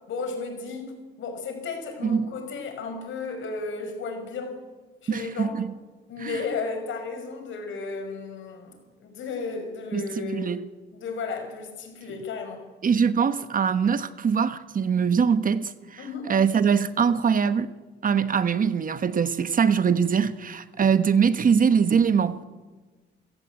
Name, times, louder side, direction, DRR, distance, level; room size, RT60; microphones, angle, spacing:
voice 1, 0.1-4.6 5.0-5.6 6.1-10.5 10.9-12.6 16.0-16.3, left 4 dB, 75° left, 5.8 m, -34 dB
voice 2, 5.1-5.7 6.2-6.4 9.9-10.6 12.8-17.7 18.0-22.4, right 6 dB, 45° right, 1.2 m, -23 dB
28.0 x 16.5 x 8.3 m
cardioid pair, 90°, 20 cm